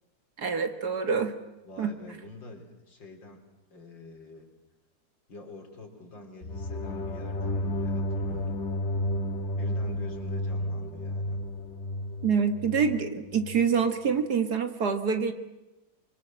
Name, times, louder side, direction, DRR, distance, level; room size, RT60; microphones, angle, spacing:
voice 1, 0.4-1.3 1.8-1.9 12.2-15.3, right 6 dB, 60° right, 8 dB, 2.3 m, -26 dB
voice 2, 1.6-3.4 3.7-4.5 5.3-8.6 9.5-11.4, left 2 dB, 85° left, 3 dB, 4.5 m, -46 dB
sound 1, 6.4-13.7, left 1 dB, 40° left, 1.8 m, -32 dB
25.5 x 24.5 x 7.6 m, 1.0 s
omnidirectional pair, 2.0 m